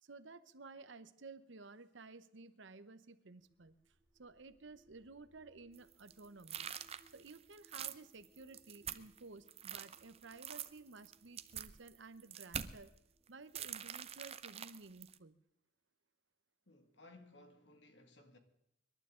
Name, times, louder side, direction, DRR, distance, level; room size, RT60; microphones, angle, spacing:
voice 1, 0.0-6.7 7.1-12.9 13.3-15.3, right 3 dB, 70° right, 0.9 m, -54 dB
sound 1, 3.4-15.2, right 1 dB, 5° right, 3.3 m, -73 dB
sound 2, 5.8-9.2 9.5-12.9 13.6-15.2, right 8 dB, 30° right, 0.6 m, -45 dB
voice 2, 16.7-18.4, left 2 dB, 65° left, 2.1 m, -60 dB
26.0 x 12.0 x 3.8 m
head